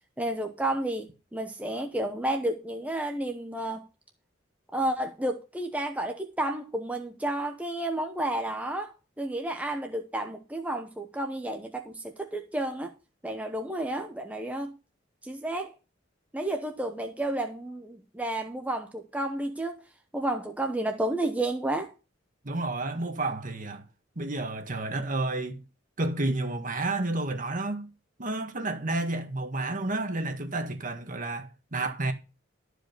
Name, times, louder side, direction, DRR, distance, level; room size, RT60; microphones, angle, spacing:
voice 1, 0.2-3.9 4.7-12.9 13.2-14.8 15.2-15.8 16.3-19.8 20.1-21.9, right 1 dB, 10° right, 0.9 m, -31 dB
voice 2, 22.4-23.8 24.2-25.6 26.0-27.9 28.2-32.1, right 2 dB, 45° right, 1.7 m, -30 dB
13.0 x 5.0 x 6.6 m
head